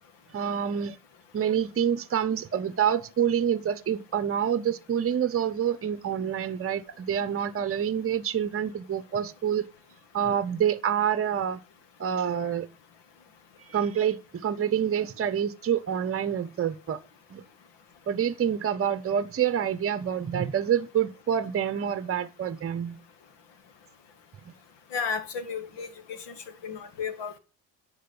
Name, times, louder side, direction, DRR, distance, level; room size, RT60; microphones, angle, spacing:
voice 1, 0.3-1.0 1.3-9.7 10.1-11.6 12.0-12.7 13.7-17.0 17.3-17.4 18.1-23.0, right 8 dB, 30° right, 0.9 m, -27 dB
voice 2, 24.9-26.2 26.6-27.4, left 6 dB, 65° left, 1.9 m, -33 dB
10.0 x 4.8 x 6.8 m
hypercardioid pair, 60°, 45 cm